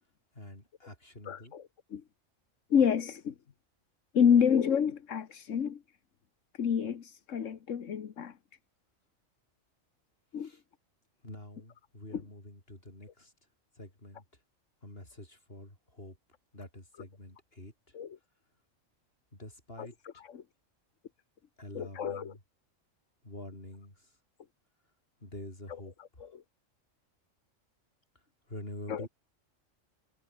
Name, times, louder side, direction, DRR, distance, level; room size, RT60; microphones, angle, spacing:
voice 1, 0.3-1.5 10.4-10.6 11.2-13.3 13.8-14.2 14.8-16.2 16.5-17.7 19.3-19.9 21.6-22.4 23.2-23.9 25.2-25.9 28.5-29.1, left 1 dB, 45° left, 7.2 m, -46 dB
voice 2, 1.2-2.0 2.7-3.3 4.1-5.8 6.5-8.4 10.3-10.5 12.1-12.2 17.9-18.2 19.8-20.4 21.7-22.4 25.7-26.4 28.9-29.1, left 7 dB, 70° left, 1.6 m, -29 dB
omnidirectional pair, 1.4 m